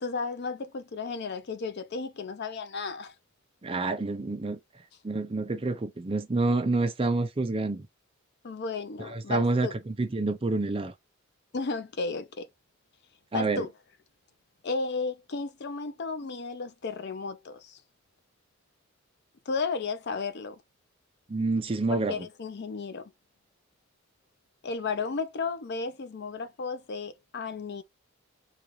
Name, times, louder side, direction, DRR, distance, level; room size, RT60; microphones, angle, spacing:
voice 1, 0.0-3.1 8.4-9.7 11.5-12.5 13.3-13.7 14.6-17.8 19.5-20.6 21.9-23.1 24.6-27.8, left 4 dB, 55° left, 0.5 m, -33 dB
voice 2, 3.6-4.6 5.0-7.9 9.1-9.7 10.0-10.9 13.3-13.7 21.3-22.1, right 3 dB, 25° right, 0.5 m, -28 dB
3.8 x 2.3 x 3.0 m
head